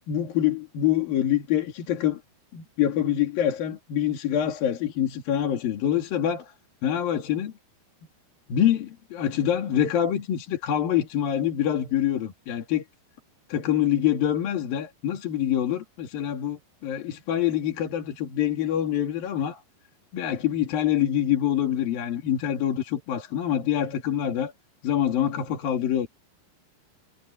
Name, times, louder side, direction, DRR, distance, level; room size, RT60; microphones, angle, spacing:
voice 1, 0.1-2.2 2.5-6.5 6.8-7.5 8.5-12.8 13.5-19.6 20.1-24.5 24.8-26.1, left 10 dB, 65° left, 4.0 m, -25 dB
omnidirectional pair, 4.5 m